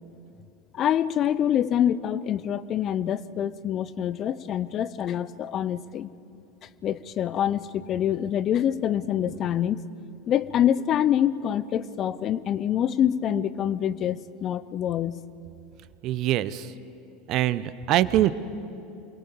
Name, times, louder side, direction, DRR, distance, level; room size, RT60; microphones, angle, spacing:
voice 1, 0.7-6.1 6.8-9.8 10.3-15.2, left 10 dB, 40° left, 18 dB, 0.8 m, -25 dB
voice 2, 16.0-16.7 17.3-18.3, right 14 dB, 50° right, 16 dB, 0.9 m, -23 dB
28.5 x 22.0 x 7.2 m, 2.6 s
figure-of-eight pair, 75°, 0 cm